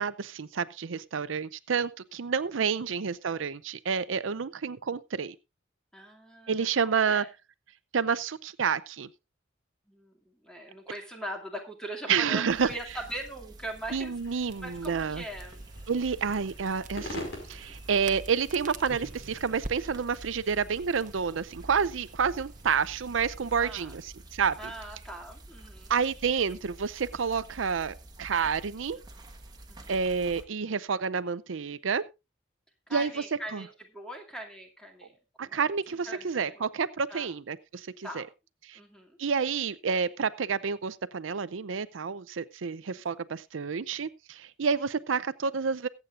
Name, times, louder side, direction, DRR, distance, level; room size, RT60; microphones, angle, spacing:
voice 1, 0.0-5.3 6.5-7.2 7.9-9.1 12.1-12.7 13.9-15.2 15.9-24.6 25.9-29.0 29.9-32.0 32.9-33.1 33.5-33.6 35.4-38.2 38.7-38.8 39.2-45.9, right 6 dB, 85° right, 0.6 m, -29 dB
voice 2, 5.9-7.3 9.9-15.6 23.6-24.0 24.6-25.9 29.7-30.0 32.9-36.6 37.1-37.3 38.0-38.3 38.7-39.2 42.9-43.0, right 1 dB, 5° left, 2.4 m, -41 dB
sound 1, 12.5-30.4, right 1 dB, 20° right, 1.4 m, -49 dB
sound 2, 14.1-19.5, left 1 dB, 75° left, 4.9 m, -46 dB
Crackle, 14.5-24.1, right 2 dB, 45° right, 1.0 m, -47 dB
22.5 x 8.3 x 2.5 m
head